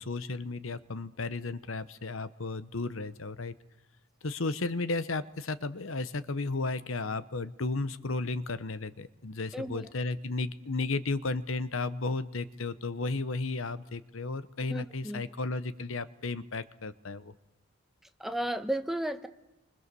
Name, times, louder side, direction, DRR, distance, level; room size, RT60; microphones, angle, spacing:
voice 1, 0.0-3.5 4.2-17.3, left 3 dB, 75° left, 14 dB, 1.0 m, -34 dB
voice 2, 9.5-9.9 14.7-15.2 18.2-19.3, right 1 dB, ahead, 7 dB, 1.1 m, -33 dB
28.0 x 25.0 x 6.9 m, 0.92 s
head